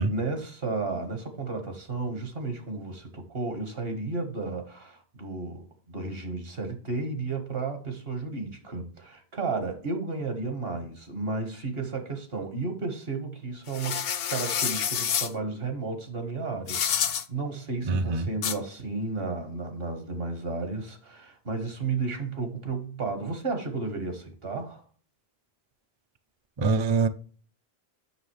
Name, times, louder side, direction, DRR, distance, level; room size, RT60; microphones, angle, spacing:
voice 1, 0.0-14.0 14.3-24.8, right 3 dB, 70° right, 1.7 m, -33 dB
sound 1, 13.7-15.3 16.7-17.2 18.4-18.6, left 8 dB, 70° left, 0.9 m, -28 dB
voice 2, 17.9-18.3 26.6-27.1, right 3 dB, 40° right, 0.4 m, -24 dB
7.6 x 6.2 x 3.2 m
omnidirectional pair, 1.0 m